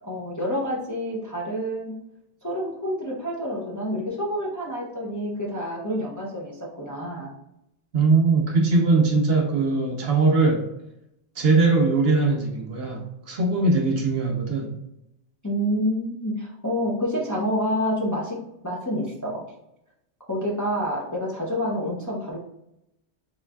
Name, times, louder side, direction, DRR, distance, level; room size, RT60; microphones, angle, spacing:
voice 1, 0.0-2.0 2.4-7.3 15.4-18.4 18.6-19.4 20.3-22.4, equal, 20° left, -4 dB, 0.6 m, -28 dB
voice 2, 7.9-10.7 11.4-14.8, right 3 dB, 65° right, 2 dB, 0.9 m, -21 dB
4.0 x 3.2 x 2.2 m, 0.83 s
omnidirectional pair, 1.2 m